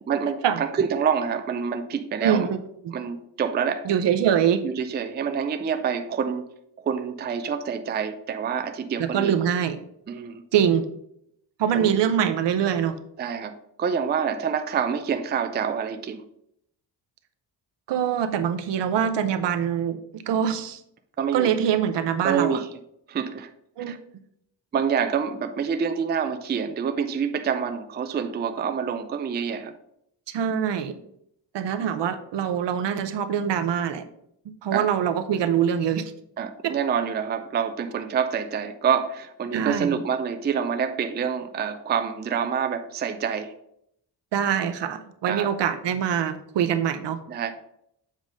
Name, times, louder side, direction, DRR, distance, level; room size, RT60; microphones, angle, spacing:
voice 1, 0.1-2.5 2.9-3.9 4.6-6.4 6.8-9.4 10.1-10.4 11.7-11.9 13.2-16.2 21.2-21.6 22.2-22.7 23.1-23.5 23.9-24.0 24.7-29.7 34.7-34.9 36.4-43.5 45.3-45.5 47.3-47.5, right 7 dB, 25° right, 0.4 m, -27 dB
voice 2, 2.2-2.6 2.8-2.9 3.8-4.6 9.0-9.8 10.5-10.9 11.6-13.0 17.9-20.8 21.3-22.6 23.8-23.9 30.3-31.0 31.5-34.0 34.6-36.0 39.5-40.0 44.3-47.2, right 8 dB, 75° right, 0.8 m, -24 dB
7.4 x 3.8 x 5.0 m
wide cardioid pair, 160°, 43 cm